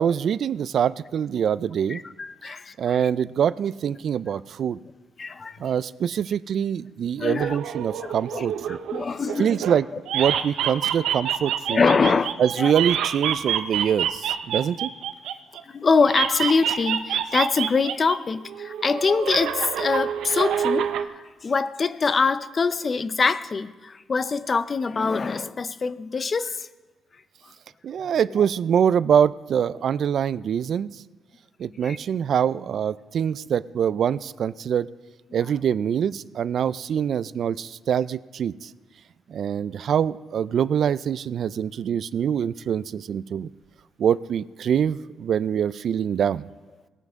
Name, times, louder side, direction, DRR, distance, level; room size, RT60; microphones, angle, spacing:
voice 1, 0.0-2.0 2.8-4.8 5.6-8.8 9.4-9.8 10.1-11.8 12.4-14.9 27.8-30.9 31.6-34.9 35.3-38.7 39.3-43.5 44.0-46.5, right 8 dB, 60° right, 0.3 m, -24 dB
voice 2, 1.9-3.0 5.2-5.6 7.2-7.6 8.3-9.6 10.2-10.4 11.7-12.7 15.6-26.7 28.4-28.5 31.7-32.0, left 4 dB, 35° left, 0.6 m, -24 dB
sound 1, 7.4-9.8 10.1-15.6 16.1-18.2 18.4-21.0, right 9 dB, 80° right, 0.7 m, -27 dB
18.5 x 9.2 x 3.6 m
cardioid pair, 90°, 0 cm